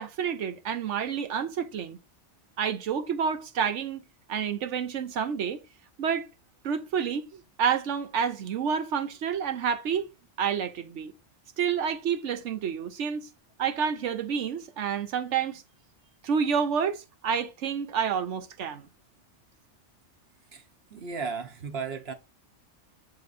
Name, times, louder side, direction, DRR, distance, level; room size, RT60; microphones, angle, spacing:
voice 1, 0.0-2.0 2.6-4.0 4.3-5.6 6.0-6.3 6.6-10.1 10.4-11.1 11.6-13.3 13.6-15.6 16.2-18.9, right 7 dB, 80° right, 1.1 m, -29 dB
voice 2, 20.9-22.1, right 5 dB, 60° right, 1.3 m, -34 dB
6.8 x 4.0 x 4.1 m
omnidirectional pair, 1.2 m